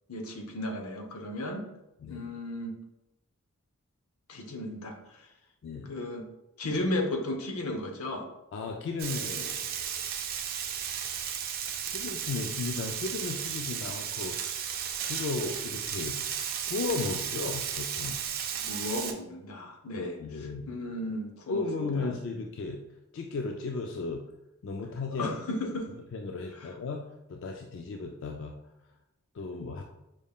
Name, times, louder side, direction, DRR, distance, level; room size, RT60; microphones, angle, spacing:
voice 1, 0.1-1.6 2.1-2.7 4.3-5.0 5.8-6.3 6.6-8.3 18.6-20.1 20.7-22.1 25.2-25.8 26.6-26.7, left 1 dB, 75° left, 4 dB, 0.7 m, -34 dB
voice 2, 5.6-6.0 8.5-9.6 11.1-11.2 11.9-16.3 16.7-18.2 19.9-20.8 21.5-22.8 23.1-24.2 24.6-25.3 26.1-27.0 27.3-28.6 29.3-29.8, left 4 dB, 55° left, 2 dB, 0.3 m, -35 dB
Frying (food), 9.0-19.1, right 8 dB, 40° right, 0.4 m, -34 dB
5.0 x 2.3 x 3.5 m, 0.93 s
head